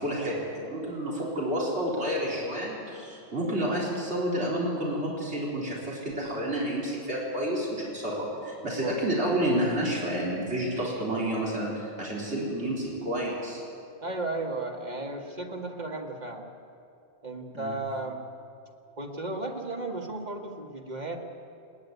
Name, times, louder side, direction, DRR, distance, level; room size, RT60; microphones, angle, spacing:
voice 1, 0.0-13.6 17.5-17.7, right 1 dB, 75° right, -5 dB, 4.3 m, -30 dB
voice 2, 14.0-16.4 17.2-18.2 19.0-21.2, right 2 dB, 40° right, 1 dB, 2.1 m, -34 dB
30.0 x 10.0 x 9.5 m, 2.6 s
omnidirectional pair, 1.2 m